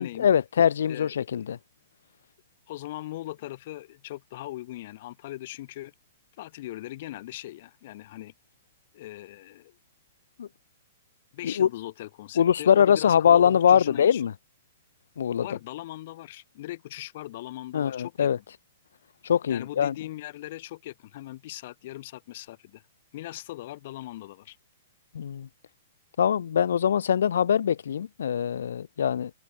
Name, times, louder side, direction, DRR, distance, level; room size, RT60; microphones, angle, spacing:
voice 1, 0.0-1.6 10.4-10.5 11.4-11.7 12.4-14.3 15.2-15.5 17.7-18.4 19.2-19.9 25.1-25.5 26.2-29.3, left 8 dB, 80° left, 0.6 m, -22 dB
voice 2, 0.8-1.5 2.7-5.9 6.4-8.3 8.9-9.8 11.3-14.2 15.4-18.3 19.5-22.8 23.1-24.6, left 16 dB, 45° left, 1.8 m, -40 dB
hypercardioid pair, 160°, 0 cm